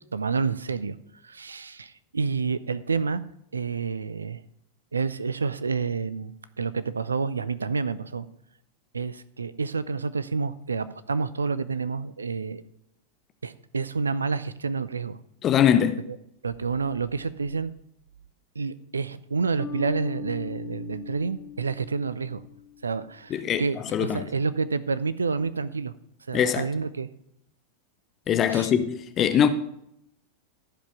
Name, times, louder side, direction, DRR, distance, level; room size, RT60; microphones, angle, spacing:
voice 1, 0.1-1.0 1.2-3.2 3.5-4.4 4.9-8.3 8.9-12.6 13.4-15.2 16.1-16.2 16.4-17.7 18.6-22.4 22.8-25.9 26.3-27.1 28.5-28.7, right 5 dB, 75° right, 0.5 m, -29 dB
voice 2, 15.4-16.0 23.3-23.6 23.9-24.3 26.3-26.6 28.3-29.5, left 9 dB, 30° left, 0.8 m, -22 dB
Bass guitar, 19.6-23.1, left 8 dB, ahead, 2.5 m, -39 dB
14.5 x 5.1 x 5.7 m
figure-of-eight pair, 90°, 0 cm